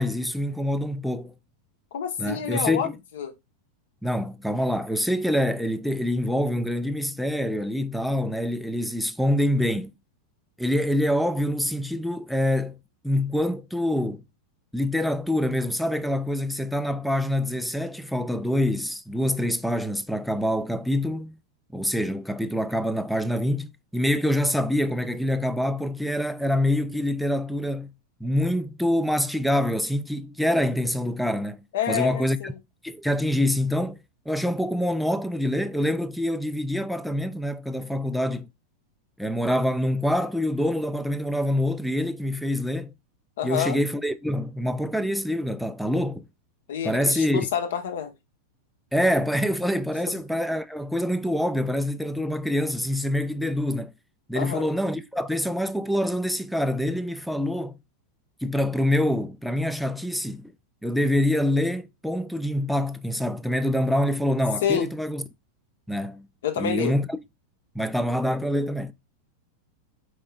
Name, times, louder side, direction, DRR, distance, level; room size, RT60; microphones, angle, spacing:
voice 1, 0.0-1.3 2.2-2.9 4.0-9.9 10.6-12.8 13.0-14.2 14.7-21.4 21.7-27.9 28.2-31.6 31.9-32.5 32.8-34.0 34.3-38.5 39.2-42.9 43.4-46.3 46.8-47.5 48.9-53.9 54.3-57.8 58.4-60.5 60.8-65.2 65.9-66.3 66.6-67.2 67.7-68.9, left 1 dB, ahead, 0.5 m, -25 dB
voice 2, 1.9-2.9 3.1-3.3 31.7-32.6 43.4-43.8 46.7-48.1 54.3-54.6 64.6-64.9 66.4-66.9, left 9 dB, 60° left, 1.1 m, -28 dB
4.8 x 4.7 x 2.3 m
figure-of-eight pair, 90°, 0 cm